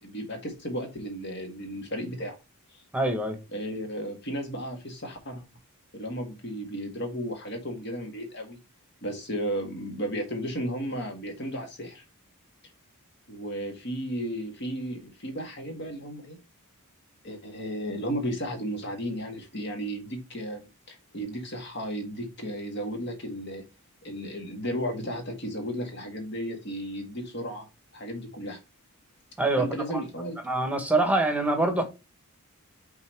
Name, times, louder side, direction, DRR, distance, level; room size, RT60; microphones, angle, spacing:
voice 1, 0.0-2.4 2.7-2.8 3.5-5.4 5.9-8.6 9.0-12.0 13.3-16.4 17.2-23.6 24.0-27.7 27.9-28.6 29.6-30.4, equal, 50° left, 1.8 m, -34 dB
voice 2, 2.9-3.4 29.4-29.7 30.4-31.8, right 2 dB, 5° right, 1.1 m, -24 dB
5.5 x 3.9 x 4.4 m
head